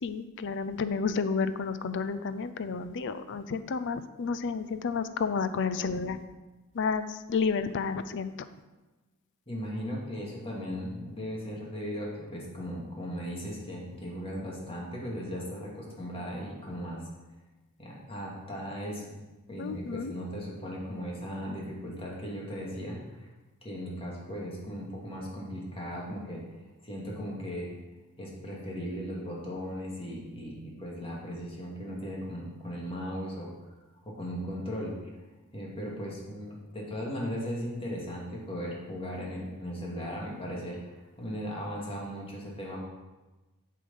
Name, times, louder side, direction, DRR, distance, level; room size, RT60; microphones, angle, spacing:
voice 1, 0.0-6.2 6.7-8.3 19.6-20.1, left 5 dB, 55° left, 12 dB, 0.5 m, -31 dB
voice 2, 9.5-17.0 17.8-19.2 19.5-23.3 23.6-26.4 26.8-27.7 28.2-33.5 34.0-34.9 35.5-42.8, equal, 25° left, -3 dB, 2.3 m, -37 dB
8.5 x 6.6 x 5.6 m, 1.1 s
head